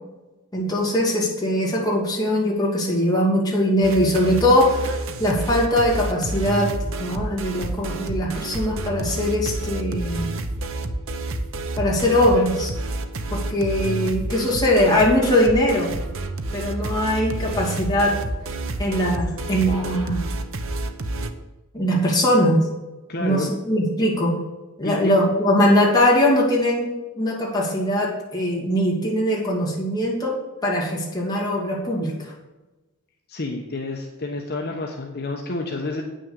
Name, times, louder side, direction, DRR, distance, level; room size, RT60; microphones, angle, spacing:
voice 1, 0.5-6.7 7.0-10.3 11.8-12.7 13.3-15.9 16.5-18.1 18.8-20.2 21.7-22.7 23.2-24.4 24.8-26.9 27.2-30.4 30.6-32.3, left 1 dB, 20° left, -3 dB, 2.5 m, -21 dB
sound 1, 3.8-21.3, right 2 dB, 60° right, 0.8 m, -29 dB
voice 2, 23.1-23.5 24.8-25.1 33.3-36.0, left 2 dB, 45° left, 1 dB, 0.9 m, -29 dB
9.0 x 6.4 x 6.8 m, 1.1 s
head